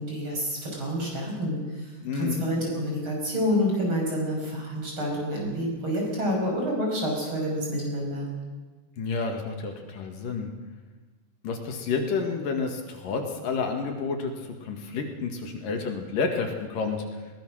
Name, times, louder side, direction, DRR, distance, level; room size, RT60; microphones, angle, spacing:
voice 1, 0.0-8.3, equal, 35° right, -1 dB, 6.9 m, -28 dB
voice 2, 2.0-2.5 9.0-10.5 11.4-17.0, left 4 dB, 70° left, 4 dB, 3.7 m, -30 dB
21.5 x 18.5 x 6.4 m, 1.3 s
omnidirectional pair, 4.0 m